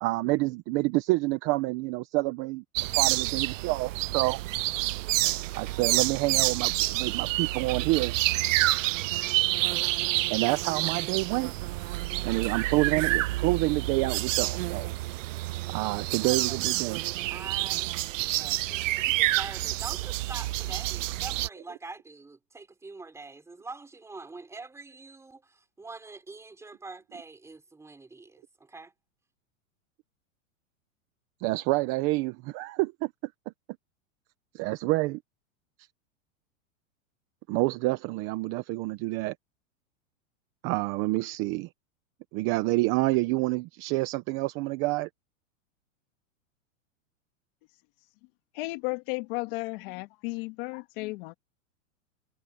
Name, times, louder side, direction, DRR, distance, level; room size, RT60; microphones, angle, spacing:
voice 1, 0.0-2.6 2.9-4.4 5.5-8.1 10.3-11.5 12.2-14.9 15.7-17.0 31.4-33.3 34.5-35.2 37.5-39.3 40.6-41.7 42.3-45.1, right 21 dB, 30° right, 0.9 m, -28 dB
sound 1, 2.8-21.5, right 18 dB, 70° right, 0.5 m, -28 dB
voice 2, 16.2-17.0 17.3-28.9, right 3 dB, 5° right, 5.7 m, -45 dB
voice 3, 48.5-51.3, left 25 dB, 45° left, 1.9 m, -34 dB
supercardioid pair, 155°, 40 cm